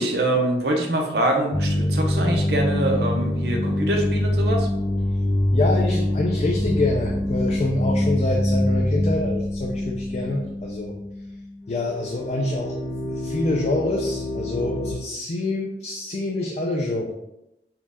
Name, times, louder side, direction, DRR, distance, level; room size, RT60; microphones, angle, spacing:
voice 1, 0.0-4.7, right 1 dB, 65° right, 2 dB, 0.7 m, -24 dB
sound 1, 1.5-11.4 11.7-14.9, left 1 dB, 80° left, 1.3 m, -24 dB
voice 2, 5.5-11.0 11.7-12.8 13.1-17.1, left 2 dB, 40° left, 0 dB, 0.4 m, -26 dB
4.3 x 2.3 x 3.6 m, 0.88 s
head